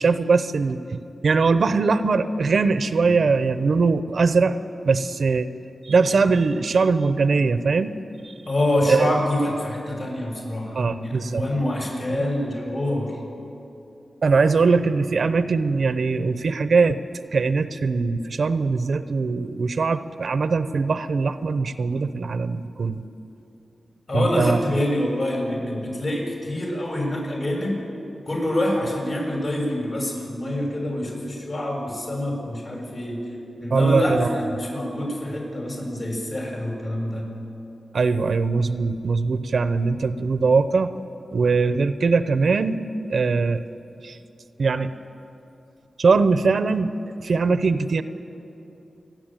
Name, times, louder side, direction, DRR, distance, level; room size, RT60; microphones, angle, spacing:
voice 1, 0.0-4.6 4.8-5.5 5.8-7.9 8.2-8.3 8.9-9.1 10.7-11.4 12.1-12.2 14.2-17.0 17.3-23.0 24.1-24.6 33.7-34.4 37.9-40.9 41.3-42.8 43.1-43.6 44.0-44.2 44.6-44.9 46.0-46.9 47.2-48.0, right 4 dB, 70° right, 12 dB, 0.8 m, -21 dB
voice 2, 8.5-13.2 24.1-27.8 28.3-33.2 33.6-37.3, left 1 dB, 50° left, -1 dB, 6.9 m, -26 dB
28.0 x 11.0 x 9.1 m, 2.8 s
wide cardioid pair, 80°, 0 cm